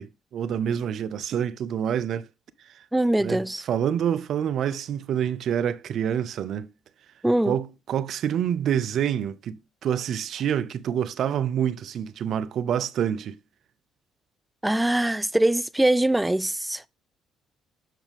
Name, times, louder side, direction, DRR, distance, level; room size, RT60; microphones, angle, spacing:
voice 1, 0.0-2.3 3.2-3.4 3.7-6.7 7.5-13.4, right 9 dB, 60° right, 0.5 m, -27 dB
voice 2, 2.9-3.6 7.2-7.6 14.6-16.8, right 1 dB, 10° right, 0.3 m, -22 dB
7.5 x 5.8 x 3.4 m
hypercardioid pair, 55°, 0 cm